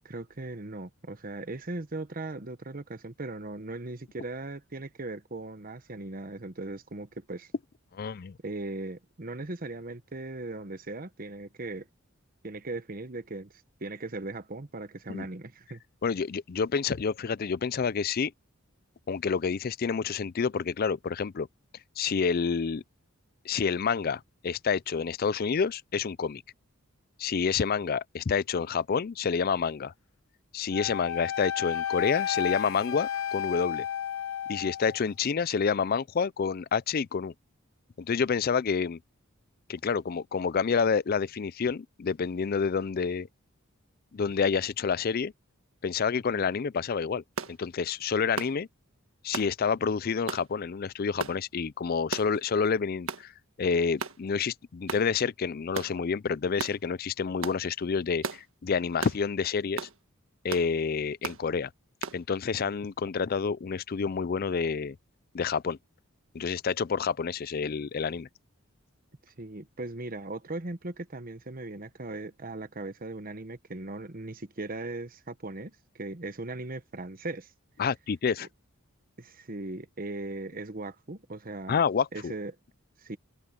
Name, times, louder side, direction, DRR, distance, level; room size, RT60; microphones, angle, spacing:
voice 1, 0.0-7.5 8.4-11.9 12.4-13.5 13.8-15.8 69.4-77.5 78.4-78.5 79.2-81.7 82.1-82.5 83.0-83.2, right 2 dB, 40° right, 1.1 m, -38 dB
voice 2, 7.9-8.4 15.1-15.3 16.0-18.3 19.1-21.5 22.0-22.8 23.4-26.4 27.2-29.9 30.5-33.9 34.5-37.3 38.0-39.0 39.7-43.3 44.1-45.3 45.8-47.2 47.5-48.7 49.2-53.3 53.6-59.9 60.4-61.7 62.1-65.0 65.3-65.8 66.3-68.3 77.8-78.5 81.7-82.3, left 5 dB, 45° left, 0.4 m, -28 dB
Wind instrument woodwind instrument, 30.7-35.0, left 9 dB, 70° left, 1.1 m, -32 dB
sound 1, 47.4-47.6 48.4-48.6 49.3-49.5 50.3-50.5 51.2-51.4 52.1-52.4 53.1-53.3 54.0-54.2 54.9-55.1 55.7-55.9 56.6-56.8 57.4-57.6 58.2-58.4 59.0-59.2 59.8-60.0 60.5-60.7 61.2-61.4 62.0-62.2, right 4 dB, 70° right, 1.6 m, -35 dB
head